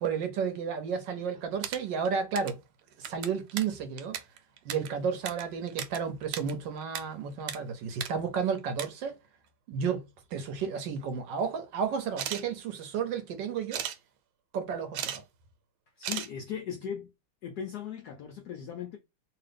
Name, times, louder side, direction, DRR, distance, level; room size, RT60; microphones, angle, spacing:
voice 1, 0.0-2.6 3.0-4.2 4.6-9.2 9.7-10.0 10.3-13.8 14.5-15.2, right 6 dB, 70° right, 1.2 m, -32 dB
sound 1, 1.3-2.6 2.9-6.0 6.2-7.0 7.3-7.6 7.9-8.1 8.5-8.9 9.9-10.0 10.3-10.9 12.1-12.4 13.7-14.0 14.7-15.2 15.5-15.6 16.0-16.3, right 10 dB, 85° right, 1.5 m, -36 dB
voice 2, 16.0-17.1 17.4-19.0, left 8 dB, 80° left, 0.9 m, -38 dB
2.9 x 2.9 x 3.3 m
omnidirectional pair, 2.3 m